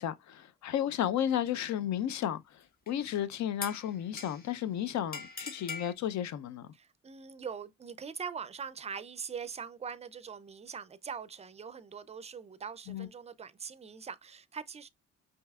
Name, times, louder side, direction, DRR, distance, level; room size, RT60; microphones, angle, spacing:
voice 1, 0.0-6.7 12.9-13.1, left 10 dB, 65° left, 0.6 m, -33 dB
sound 1, 2.9-3.1 3.6-4.6 5.1-5.9, left 4 dB, 30° left, 1.2 m, -42 dB
voice 2, 6.7-14.9, right 6 dB, 20° right, 0.4 m, -42 dB
5.3 x 2.8 x 2.3 m
cardioid pair, 90°, 30 cm